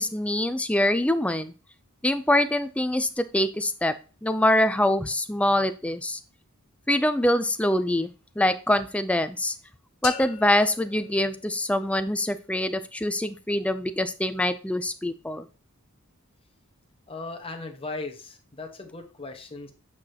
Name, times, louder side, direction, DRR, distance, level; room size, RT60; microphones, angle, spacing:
voice 1, 0.0-1.5 2.0-3.9 4.2-6.2 6.9-8.1 8.4-9.6 10.0-15.5, left 1 dB, 5° left, 11 dB, 0.4 m, -24 dB
sound 1, 10.0-12.0, left 9 dB, 80° left, 0.9 m, -39 dB
voice 2, 17.1-19.7, left 3 dB, 25° left, 3 dB, 1.1 m, -37 dB
8.4 x 4.9 x 2.8 m, 0.34 s
head